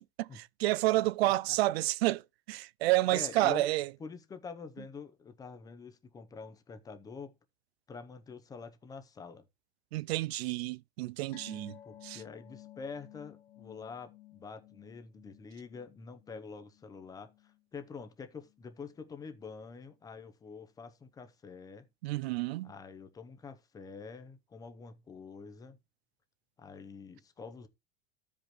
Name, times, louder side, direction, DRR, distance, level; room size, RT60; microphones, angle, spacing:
voice 1, 0.0-2.2 2.5-3.9 9.9-11.7 12.0-12.2 22.0-22.7, right 18 dB, 90° right, 0.5 m, -29 dB
voice 2, 0.9-1.3 3.1-3.7 4.0-7.3 7.9-9.4 11.8-21.9 22.6-25.8 26.6-27.7, left 5 dB, 10° left, 0.7 m, -46 dB
sound 1, 11.3-18.1 18.4-18.6 19.0-19.1, left 13 dB, 65° left, 1.6 m, -55 dB
14.5 x 5.2 x 3.0 m
supercardioid pair, 160°, 30 cm